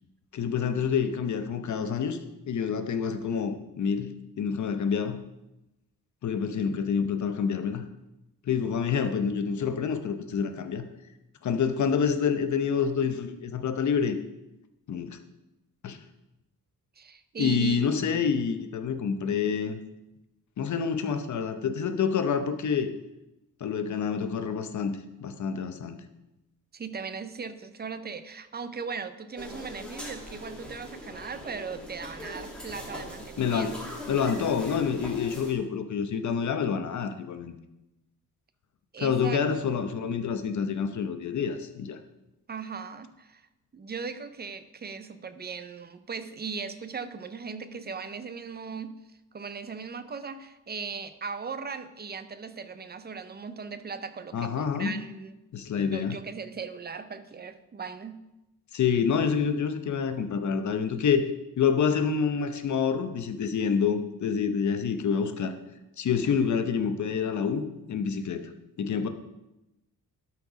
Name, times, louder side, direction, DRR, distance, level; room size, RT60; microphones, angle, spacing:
voice 1, 0.3-2.2 2.5-5.2 6.2-7.8 8.5-10.8 11.4-14.2 14.9-15.2 15.8-16.0 17.4-19.8 20.6-22.9 23.6-26.0 33.4-33.7 34.1-37.5 39.0-42.0 54.3-55.0 55.5-56.2 58.7-61.2 61.6-65.6 66.0-68.5 68.8-69.1, left 6 dB, 55° left, 8 dB, 0.8 m, -27 dB
voice 2, 17.0-18.0 26.7-33.7 38.9-39.6 42.5-43.4 43.7-49.0 49.3-55.3 55.8-58.2, right 5 dB, 30° right, 11 dB, 0.5 m, -38 dB
sound 1, 29.4-35.5, equal, 5° left, 1.8 m, -41 dB
12.0 x 4.5 x 5.0 m, 0.96 s
wide cardioid pair, 145°, 35 cm